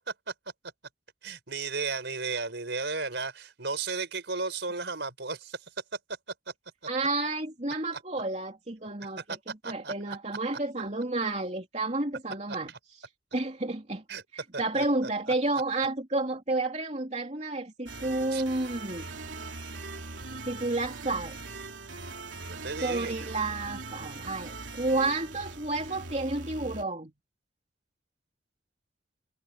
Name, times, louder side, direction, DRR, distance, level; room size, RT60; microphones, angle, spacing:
voice 1, 1.2-5.6 7.9-8.0 9.0-9.4 9.6-10.2 14.1-14.2 14.5-14.8 15.3-15.4 18.3-18.4 22.5-23.3, right 4 dB, 65° right, 4.9 m, -34 dB
voice 2, 6.9-9.2 9.6-12.7 13.3-14.0 14.3-19.1 20.3-21.4 22.8-27.1, right 2 dB, 35° right, 3.1 m, -31 dB
sound 1, 17.9-26.8, right 3 dB, 85° right, 3.1 m, -41 dB
head